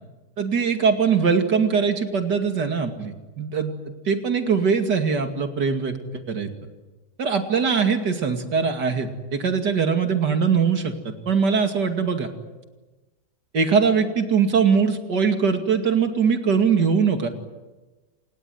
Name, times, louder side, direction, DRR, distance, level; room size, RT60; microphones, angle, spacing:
voice 1, 0.4-3.7 4.1-6.0 6.3-6.5 7.2-12.3 13.5-17.3, right 6 dB, 70° right, 6 dB, 3.0 m, -21 dB
27.5 x 19.5 x 9.5 m, 1.2 s
omnidirectional pair, 1.9 m